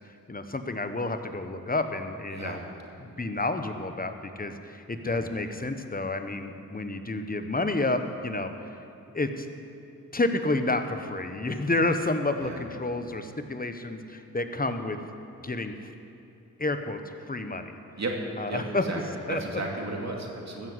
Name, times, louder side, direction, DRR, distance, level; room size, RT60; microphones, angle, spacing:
voice 1, 0.3-2.6 3.0-8.8 9.1-9.5 10.1-15.0 15.4-15.7 16.6-17.0 17.3-17.7 18.4-18.8 19.3-19.6, left 2 dB, 25° left, 8 dB, 1.1 m, -30 dB
voice 2, 19.3-20.7, right 2 dB, 50° right, 0 dB, 2.6 m, -34 dB
14.5 x 7.2 x 8.0 m, 2.8 s
cardioid pair, 45°, 34 cm